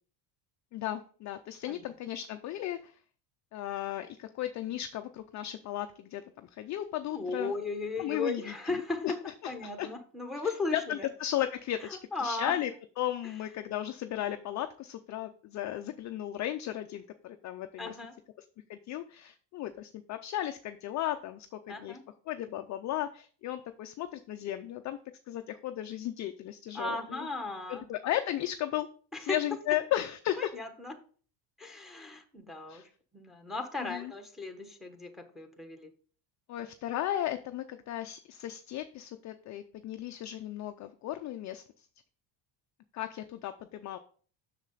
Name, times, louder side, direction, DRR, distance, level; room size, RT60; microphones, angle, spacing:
voice 1, 0.7-3.0 3.5-7.5 8.0-8.5 9.0-9.1 9.4-9.9 10.4-12.7 13.0-18.0 18.7-22.0 22.3-25.0 25.3-27.3 27.7-28.9 29.2-30.5 32.7-32.9 33.8-34.1 36.5-41.9 42.9-44.0, left 12 dB, 40° left, 7 dB, 0.4 m, -35 dB
voice 2, 7.1-11.1 12.1-12.5 17.8-18.1 21.7-22.0 26.7-27.9 29.1-29.4 30.4-30.9 31.6-32.8 33.1-35.9, left 3 dB, ahead, 6 dB, 1.1 m, -36 dB
7.2 x 6.6 x 3.9 m, 0.43 s
cardioid pair, 140°, 49 cm